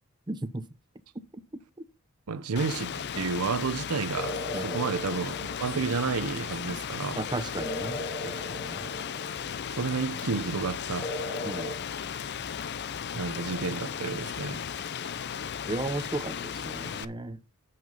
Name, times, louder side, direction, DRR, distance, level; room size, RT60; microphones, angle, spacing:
voice 1, 0.3-0.6 4.5-4.8 5.7-5.8 7.2-8.0 8.3-8.9 11.4-11.7 15.6-17.4, right 2 dB, 20° right, 0.6 m, -35 dB
voice 2, 2.3-7.2 9.7-11.1 13.1-14.6, right 4 dB, 85° right, 0.7 m, -31 dB
Rain, 2.6-17.1, left 7 dB, 50° left, 0.5 m, -36 dB
sound 1, 4.2-6.2 7.6-9.7 11.0-11.8, left 1 dB, 20° left, 2.5 m, -37 dB
7.7 x 5.9 x 5.3 m
head